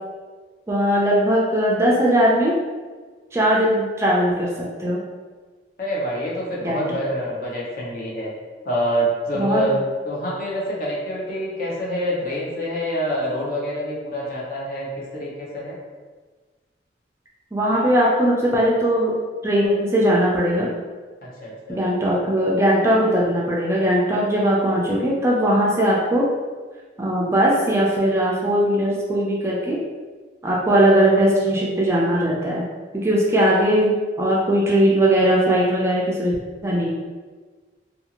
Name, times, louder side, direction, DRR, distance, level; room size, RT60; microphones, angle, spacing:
voice 1, 0.7-2.5 3.3-5.0 6.6-6.8 9.3-9.8 17.5-19.1 19.4-20.7 21.7-26.3 27.0-29.8 30.4-32.6 32.9-36.3 36.6-36.9, right 1 dB, 15° right, -4 dB, 0.4 m, -19 dB
voice 2, 5.8-8.3 8.6-9.8 10.0-14.9 15.1-15.8 21.2-21.8, equal, 50° left, -5 dB, 0.7 m, -26 dB
2.6 x 2.4 x 2.8 m, 1.4 s
head